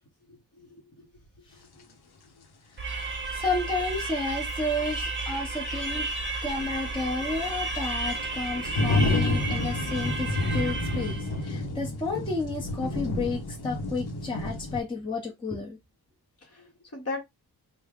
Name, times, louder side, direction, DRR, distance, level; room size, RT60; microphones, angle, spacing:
voice 1, 0.3-1.1 1.8-1.9 16.4-17.2, left 3 dB, 40° left, 0.9 m, -39 dB
sound 1, 1.8-1.9 4.4-4.5 4.9-5.0 6.6-14.8, left 2 dB, 75° left, 0.8 m, -30 dB
sound 2, 2.8-11.3, right 3 dB, 30° right, 0.7 m, -33 dB
voice 2, 3.3-6.1 6.4-15.8, left 3 dB, 15° left, 0.7 m, -32 dB
3.4 x 2.1 x 3.4 m
wide cardioid pair, 180°, 39 cm